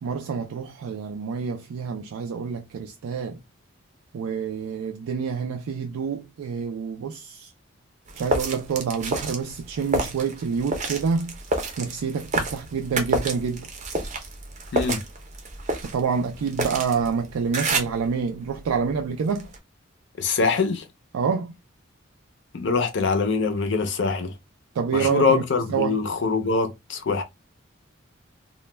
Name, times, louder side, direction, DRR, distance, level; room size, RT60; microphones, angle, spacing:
voice 1, 0.0-3.4 4.1-7.5 8.1-11.3 11.8-13.7 15.8-19.5 21.1-21.5 24.8-25.4 25.7-26.0, right 6 dB, 90° right, 0.3 m, -27 dB
sound 1, 8.1-18.1 18.5-19.6, right 2 dB, 35° right, 0.5 m, -29 dB
voice 2, 20.2-20.9 22.5-24.3 24.9-27.2, left 4 dB, 55° left, 0.5 m, -23 dB
2.1 x 2.1 x 3.1 m
head